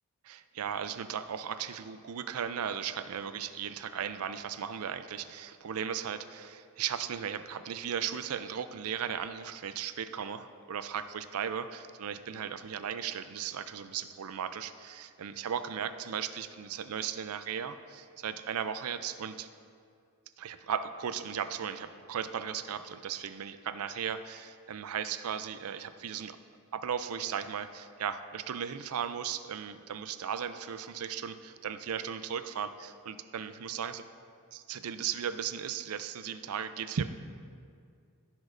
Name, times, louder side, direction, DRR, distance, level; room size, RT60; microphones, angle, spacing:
voice 1, 0.2-19.5 20.4-26.4 26.7-34.0 34.5-37.1, right 8 dB, 70° right, 11 dB, 0.4 m, -36 dB
15.0 x 6.2 x 2.6 m, 2.3 s
head